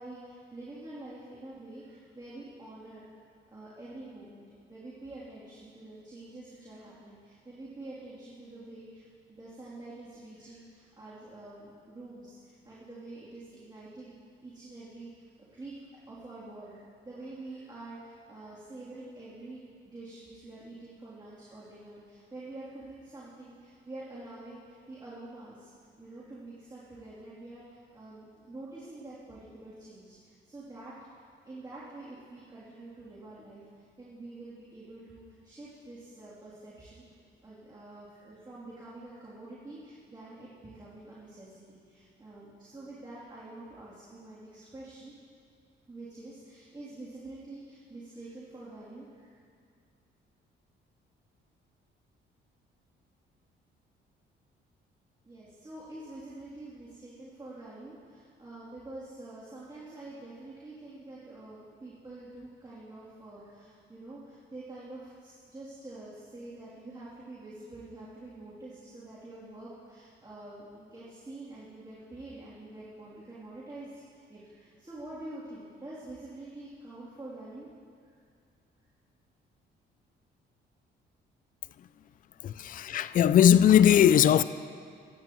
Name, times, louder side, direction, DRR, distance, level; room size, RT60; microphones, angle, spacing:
voice 1, 0.0-3.2 3.5-14.1 14.4-15.2 15.5-15.7 16.1-25.7 26.0-37.0 37.4-45.1 45.9-49.4 55.2-77.7 78.0-78.1, right 2 dB, 20° right, 2.9 m, -46 dB
voice 2, 82.4-84.4, left 10 dB, 45° left, 0.4 m, -20 dB
22.0 x 9.4 x 3.0 m
cardioid pair, 90°, 20 cm